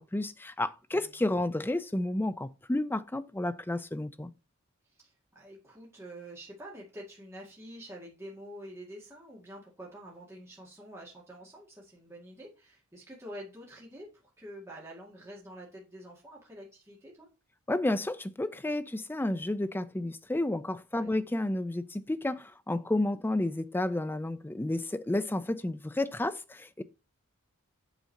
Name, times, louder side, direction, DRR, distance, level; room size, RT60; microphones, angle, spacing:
voice 1, 0.0-4.3 17.7-26.8, left 1 dB, 10° left, 0.4 m, -31 dB
voice 2, 5.0-17.3 20.9-21.2, equal, 10° right, 1.9 m, -47 dB
8.2 x 3.7 x 6.4 m
head